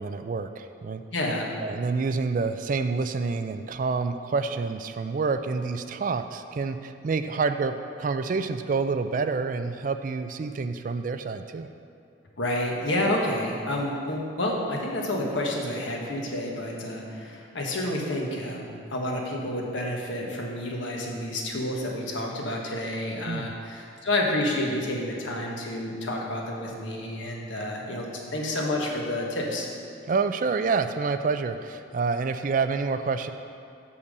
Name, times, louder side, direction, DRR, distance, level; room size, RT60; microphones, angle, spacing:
voice 1, 0.0-1.0 1.6-11.7 23.2-23.5 30.1-33.3, right 4 dB, 40° right, 9 dB, 0.3 m, -28 dB
voice 2, 1.1-1.5 12.4-29.7, left 1 dB, 75° left, -1 dB, 1.3 m, -29 dB
6.8 x 5.7 x 6.5 m, 2.4 s
head